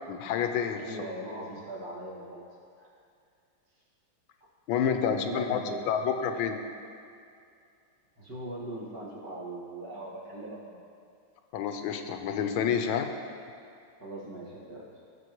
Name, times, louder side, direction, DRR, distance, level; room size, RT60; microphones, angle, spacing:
voice 1, 0.1-0.8 4.7-5.6 5.9-6.6 11.5-13.1, left 7 dB, 90° left, 6 dB, 1.5 m, -28 dB
voice 2, 0.8-2.9 5.0-6.0 8.2-10.9 14.0-15.0, right 1 dB, 50° right, -6 dB, 2.4 m, -40 dB
17.5 x 6.9 x 3.0 m, 2.4 s
omnidirectional pair, 2.2 m